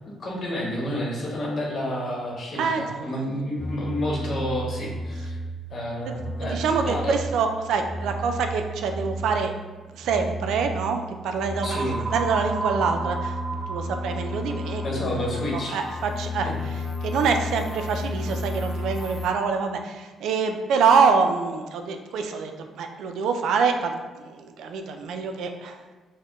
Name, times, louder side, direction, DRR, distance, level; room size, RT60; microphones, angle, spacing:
voice 1, 0.1-5.4 5.7-7.2 11.6-12.0 14.8-15.8 16.4-16.5, equal, 50° left, -2 dB, 1.0 m, -30 dB
voice 2, 2.6-3.2 6.0-9.5 9.9-13.4 13.7-15.2 15.5-25.8, right 5 dB, 80° right, 5 dB, 0.3 m, -26 dB
sound 1, 3.6-5.8 6.1-9.6 10.0-19.3, equal, 25° left, 0.4 m, -33 dB
sound 2, 11.6-15.5, right 3 dB, 30° right, 1.0 m, -33 dB
4.2 x 2.1 x 3.0 m, 1.3 s
cardioid pair, 90°, 0 cm